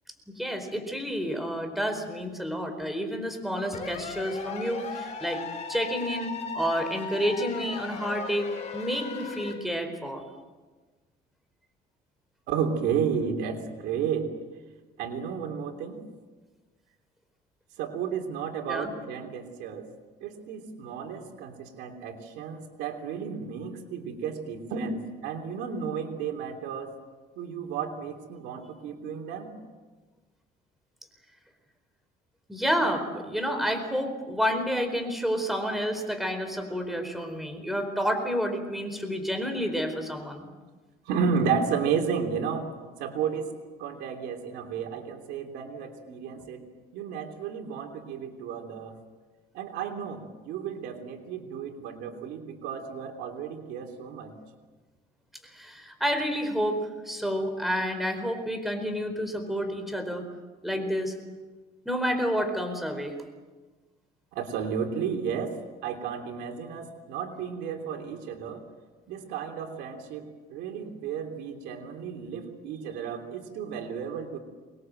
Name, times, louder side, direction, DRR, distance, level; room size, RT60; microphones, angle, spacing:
voice 1, 0.3-5.4 5.7-10.2 18.7-18.9 32.5-40.5 55.4-60.2 60.6-61.1 61.8-63.1, equal, ahead, 6 dB, 4.5 m, -29 dB
sound 1, 3.7-9.5, left 5 dB, 45° left, 5.6 m, -37 dB
voice 2, 12.5-14.3 15.0-16.0 17.8-19.9 20.2-27.0 27.3-29.5 41.0-42.7 43.0-43.5 43.8-46.6 46.9-49.0 49.5-54.3 64.3-65.5 65.8-68.6 69.1-74.4, right 6 dB, 90° right, 5 dB, 3.2 m, -32 dB
25.0 x 21.0 x 7.8 m, 1.3 s
cardioid pair, 110°, 17 cm